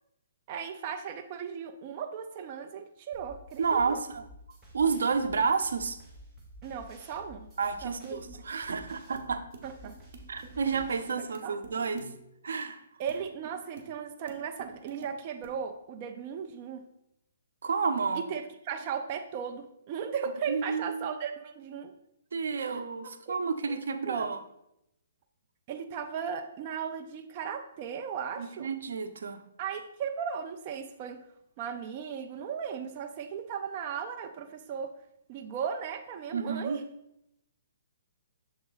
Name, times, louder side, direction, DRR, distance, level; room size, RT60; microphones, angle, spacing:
voice 1, 0.5-4.0 6.6-7.5 7.8-8.4 9.6-9.9 11.2-11.6 13.0-16.8 18.2-21.9 22.6-22.8 23.3-23.4 23.7-23.8 24.1-24.3 25.7-28.7 29.6-31.2 31.6-34.9 35.3-36.8, right 7 dB, 25° right, 5 dB, 0.3 m, -37 dB
sound 1, 3.1-11.1, equal, 5° right, 1.0 m, -51 dB
voice 2, 3.6-4.2 4.7-6.0 7.6-9.4 10.3-12.1 12.4-12.8 17.6-18.2 20.5-21.1 22.3-24.4 28.4-29.4 36.3-36.8, right 5 dB, 80° right, 9 dB, 0.6 m, -30 dB
sound 2, 8.0-8.1 8.7-8.8 9.1-9.3 9.5-11.7 12.0-12.3 13.1-13.2 13.4-13.9 14.3-15.1 15.4-15.5, right 4 dB, 45° right, 1.1 m, -47 dB
6.9 x 3.9 x 3.9 m, 0.81 s
hypercardioid pair, 175°, 0 cm